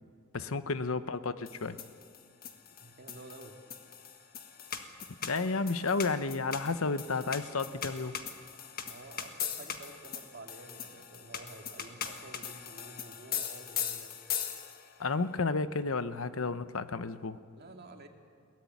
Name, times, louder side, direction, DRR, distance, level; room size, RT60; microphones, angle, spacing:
voice 1, 0.3-1.8 5.2-8.2 15.0-17.4, left 4 dB, 75° left, 13 dB, 0.9 m, -32 dB
sound 1, 1.5-15.0, left 8 dB, 45° left, 1.6 m, -40 dB
voice 2, 2.8-3.6 8.8-14.1 17.6-18.1, right 2 dB, 50° right, 4 dB, 2.2 m, -50 dB
21.5 x 18.0 x 9.4 m, 2.3 s
head